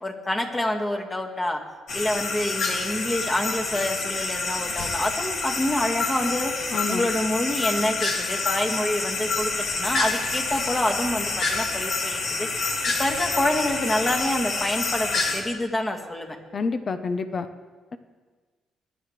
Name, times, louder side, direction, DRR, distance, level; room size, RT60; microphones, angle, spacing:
voice 1, 0.0-1.6 1.9-12.5 13.0-16.4, left 1 dB, 20° left, 2 dB, 1.9 m, -27 dB
sound 1, 1.9-15.4, left 3 dB, 65° left, 2.3 m, -27 dB
voice 2, 6.7-7.1 16.5-17.5, left 4 dB, 45° left, 9 dB, 0.9 m, -28 dB
21.0 x 11.0 x 3.3 m, 1.4 s
cardioid pair, 90°, 0 cm